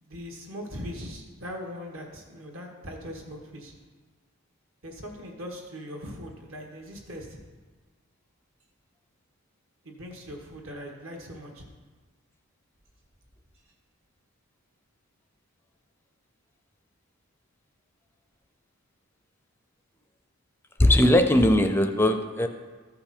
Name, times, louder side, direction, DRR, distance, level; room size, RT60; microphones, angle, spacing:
voice 1, 0.0-3.7 4.8-7.4 9.8-11.6, equal, 70° right, 2 dB, 1.6 m, -40 dB
voice 2, 20.8-22.5, left 1 dB, 10° left, 7 dB, 0.4 m, -19 dB
13.5 x 5.7 x 4.4 m, 1.4 s
head